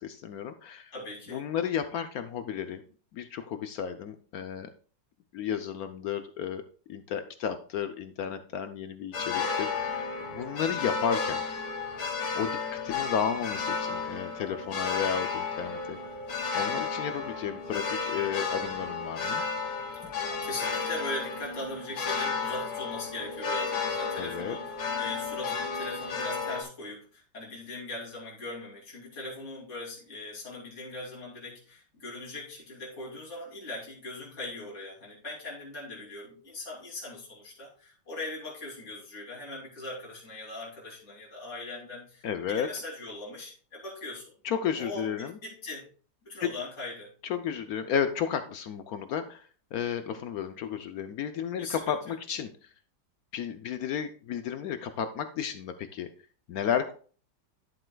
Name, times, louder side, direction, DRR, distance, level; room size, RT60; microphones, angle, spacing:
voice 1, 0.0-0.9 1.3-2.8 3.1-4.7 5.3-6.6 6.9-11.4 12.3-16.0 16.5-19.4 24.2-24.6 42.2-42.7 44.4-45.4 46.4-46.5 47.2-49.4 49.7-52.5 53.3-56.1 56.5-56.9, left 8 dB, 70° left, 9 dB, 0.9 m, -33 dB
voice 2, 0.9-1.5 20.1-44.3 44.8-45.9 46.2-47.1 51.6-52.2, left 2 dB, 40° left, -5 dB, 3.1 m, -40 dB
sound 1, 9.1-26.6, left 5 dB, 85° left, 2.1 m, -33 dB
11.5 x 7.6 x 2.3 m, 0.42 s
omnidirectional pair, 2.0 m